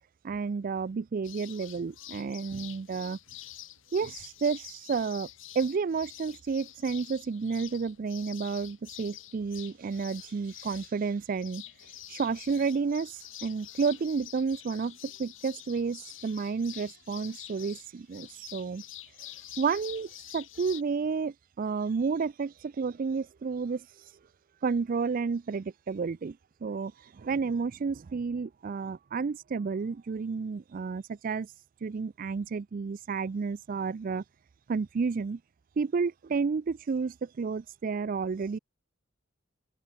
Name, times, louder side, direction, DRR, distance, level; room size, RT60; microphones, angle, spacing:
voice 1, 0.2-3.2 3.9-5.3 5.6-14.9 15.2-19.1 19.6-24.1 24.6-26.3 26.6-31.5 31.8-34.2 34.7-35.4 35.8-38.6, right 5 dB, 45° right, 0.4 m, -31 dB
sound 1, 1.2-20.8, left 14 dB, 65° left, 2.6 m, -47 dB
open air
head